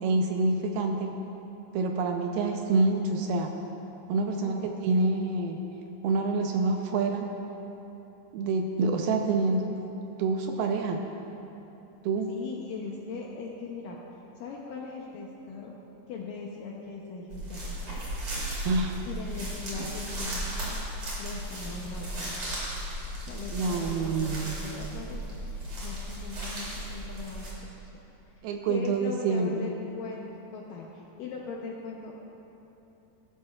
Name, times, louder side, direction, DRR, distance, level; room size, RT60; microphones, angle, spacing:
voice 1, 0.0-1.2 1.7-3.5 4.1-4.5 4.8-5.6 6.0-7.3 8.3-9.7 10.2-11.1 12.0-12.3 18.6-19.0 23.5-24.7 28.4-29.7, right 3 dB, 80° right, 3 dB, 2.3 m, -27 dB
voice 2, 4.1-4.7 12.3-14.0 14.4-15.8 16.1-18.1 19.1-20.8 21.2-22.4 23.3-25.2 25.8-27.7 28.3-30.2 30.5-32.2, left 4 dB, 75° left, -2 dB, 2.0 m, -40 dB
sound 1, 17.3-27.5, right 1 dB, 40° right, 3.6 m, -36 dB
16.5 x 13.0 x 2.4 m, 3.0 s
omnidirectional pair, 4.7 m